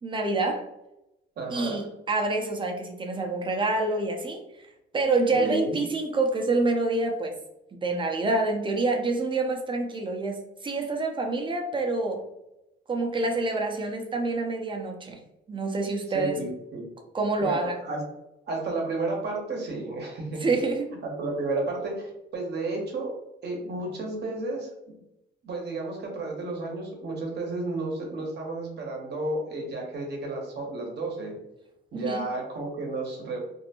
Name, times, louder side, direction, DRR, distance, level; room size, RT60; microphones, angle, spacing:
voice 1, 0.0-0.7 1.5-4.4 4.9-7.3 7.7-12.2 12.9-15.2 15.5-16.4 17.1-17.8 20.4-20.9 31.9-32.3, right 3 dB, 25° right, 3 dB, 0.5 m, -27 dB
voice 2, 1.4-1.9 5.3-5.8 16.1-16.8 17.4-18.0 18.5-20.6 21.0-23.1 23.4-25.0 25.4-31.3 31.9-33.4, right 2 dB, 60° right, 0 dB, 0.9 m, -32 dB
2.6 x 2.1 x 2.8 m, 0.88 s
cardioid pair, 90°, 20 cm